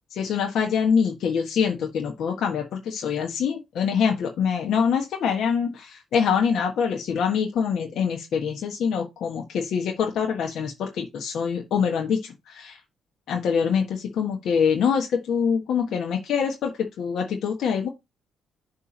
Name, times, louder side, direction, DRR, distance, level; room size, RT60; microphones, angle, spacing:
voice 1, 0.2-12.8 13.3-17.9, left 6 dB, 75° left, 1.4 m, -25 dB
7.1 x 3.5 x 5.2 m
cardioid pair, 90°, 0 cm